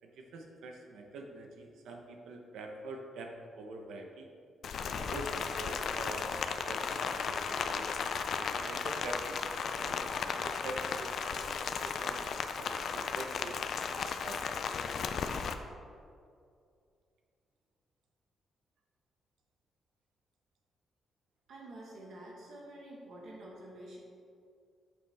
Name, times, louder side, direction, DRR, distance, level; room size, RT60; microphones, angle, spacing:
voice 1, 0.0-4.3 4.8-7.9 8.4-10.1 10.3-14.4, right 2 dB, 90° right, 3 dB, 0.9 m, -45 dB
Rain, 4.6-15.5, left 6 dB, 50° left, 0.4 m, -35 dB
voice 2, 21.5-24.0, right 1 dB, 60° right, -3 dB, 1.4 m, -48 dB
8.6 x 7.0 x 3.5 m, 2.3 s
cardioid pair, 180°, 0 cm